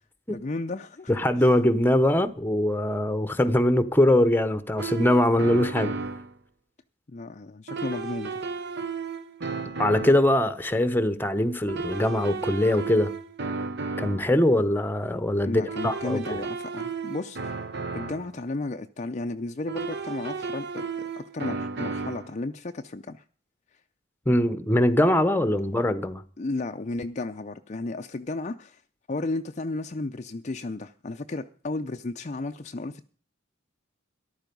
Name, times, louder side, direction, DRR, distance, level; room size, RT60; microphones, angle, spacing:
voice 1, 0.3-1.1 1.4-1.5 7.1-8.4 15.4-17.6 17.9-23.2 26.4-28.8 29.1-33.1, left 2 dB, 35° left, 0.5 m, -33 dB
voice 2, 1.1-6.0 9.8-13.1 14.0-16.4 24.3-26.2, left 1 dB, 10° left, 0.9 m, -22 dB
sound 1, 4.8-6.3 7.7-10.3 11.7-14.4 15.7-18.3 19.7-22.3, right 4 dB, 55° right, 0.9 m, -33 dB
14.0 x 11.5 x 5.3 m
head